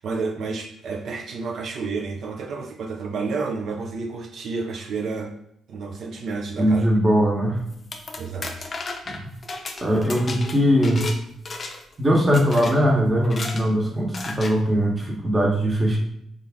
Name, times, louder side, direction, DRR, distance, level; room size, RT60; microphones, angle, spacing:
voice 1, 0.0-5.3 5.7-6.9 8.2-8.7, right 4 dB, 65° right, 2 dB, 0.4 m, -30 dB
voice 2, 6.6-7.6 9.1-9.2 9.8-11.0 12.0-16.0, equal, 20° right, 0 dB, 1.0 m, -20 dB
sound 1, 7.7-11.2 11.5-11.9 12.3-12.7 13.2-13.6 14.1-14.5, left 3 dB, 35° left, 0.5 m, -33 dB
3.9 x 2.4 x 3.4 m, 0.75 s
cardioid pair, 90°, 0 cm